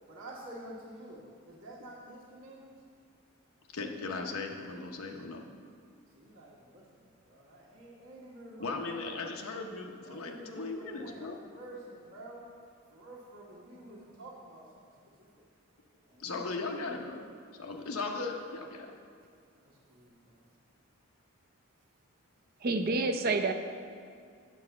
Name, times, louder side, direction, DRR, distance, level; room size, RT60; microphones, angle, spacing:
voice 1, 0.1-2.8 6.1-9.1 10.0-12.5 12.9-15.4 16.1-16.9 18.1-18.2 19.6-20.6, right 1 dB, 65° right, -10 dB, 1.4 m, -49 dB
voice 2, 3.7-5.4 8.6-11.4 16.2-17.3 17.6-18.9, left 3 dB, 85° left, 2 dB, 0.8 m, -37 dB
voice 3, 22.6-23.5, right 3 dB, 45° right, 8 dB, 0.4 m, -28 dB
7.5 x 4.6 x 6.9 m, 2.2 s
head